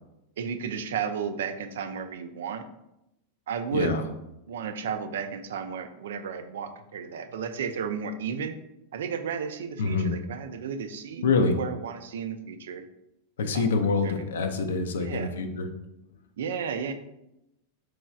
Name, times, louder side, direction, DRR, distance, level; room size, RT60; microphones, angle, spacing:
voice 1, 0.4-2.6 3.5-4.0 4.5-8.6 8.9-12.8 13.5-14.2 14.9-15.3 16.4-16.9, right 6 dB, 60° right, 9 dB, 0.3 m, -33 dB
voice 2, 3.7-4.0 9.8-10.1 11.2-11.5 13.4-15.7, left 4 dB, 65° left, 6 dB, 0.4 m, -25 dB
4.5 x 3.0 x 2.3 m, 0.87 s
figure-of-eight pair, 90°, 0 cm